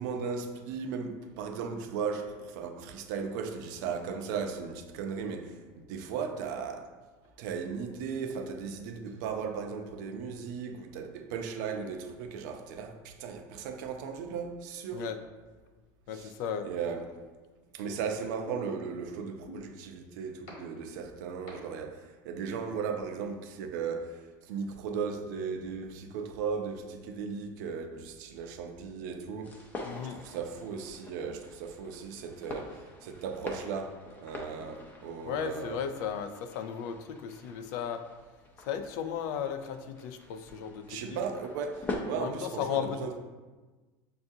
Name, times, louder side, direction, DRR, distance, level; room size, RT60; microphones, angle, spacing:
voice 1, 0.0-6.9 7.4-15.1 16.1-16.3 16.6-17.2 17.7-29.6 30.1-35.9 40.9-43.2, right 6 dB, 75° right, 0.5 m, -36 dB
voice 2, 16.1-16.7 29.8-30.2 35.2-38.0 38.6-41.3 42.1-43.2, left 8 dB, 70° left, 0.4 m, -35 dB
sound 1, 18.5-18.6 19.5-19.6 20.5-20.6 21.5-21.6 22.5-22.6, left 1 dB, 85° left, 1.4 m, -44 dB
sound 2, 29.4-42.0, left 2 dB, 15° left, 0.5 m, -45 dB
6.5 x 2.3 x 2.7 m
supercardioid pair, 145°, 10 cm